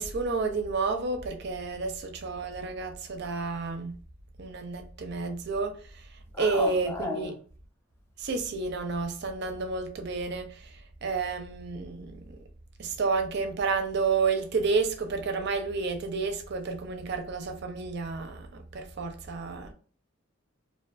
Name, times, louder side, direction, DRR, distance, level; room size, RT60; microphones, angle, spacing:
voice 1, 0.0-4.0 4.4-6.0 6.4-7.3 8.2-10.7 11.0-12.4 12.8-19.7, right 4 dB, 55° right, 0.5 m, -30 dB
voice 2, 6.3-7.4, left 2 dB, 15° left, 0.4 m, -34 dB
2.4 x 2.2 x 2.4 m
head